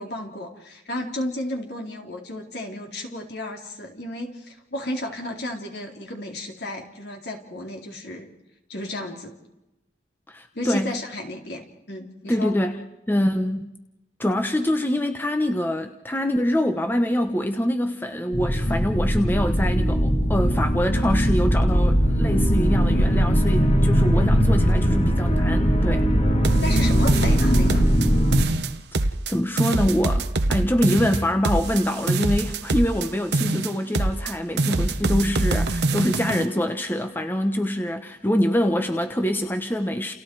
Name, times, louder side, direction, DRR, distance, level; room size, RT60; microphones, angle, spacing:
voice 1, 0.0-8.3 8.7-9.4 10.5-12.6 26.6-27.9, left 1 dB, 65° left, 2 dB, 4.0 m, -33 dB
voice 2, 10.3-10.9 12.3-12.8 13.1-13.7 14.2-26.1 29.3-40.1, equal, 10° left, 6 dB, 1.1 m, -25 dB
sound 1, 18.3-28.4, equal, 35° left, 2.2 m, -20 dB
sound 2, 26.4-28.1 28.3-29.3 29.6-33.1 33.3-34.3 34.6-36.5, right 2 dB, 70° right, 1.2 m, -24 dB
30.0 x 29.5 x 4.8 m, 0.94 s
head